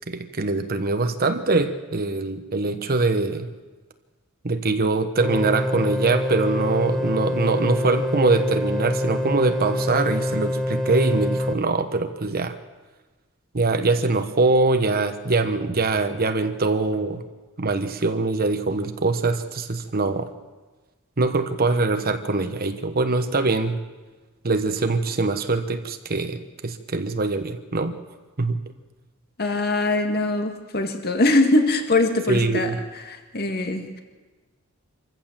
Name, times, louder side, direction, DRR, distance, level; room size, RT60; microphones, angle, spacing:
voice 1, 0.1-3.5 4.4-12.6 13.5-17.2 17.6-20.3 21.2-23.8 24.4-28.0 28.4-28.6 32.3-32.8, right 3 dB, 45° right, 8 dB, 1.1 m, -23 dB
sound 1, 5.2-11.5, left 1 dB, 5° left, 1.4 m, -25 dB
voice 2, 29.4-34.0, left 2 dB, 50° left, 5 dB, 2.0 m, -22 dB
25.5 x 15.0 x 7.4 m, 1.3 s
head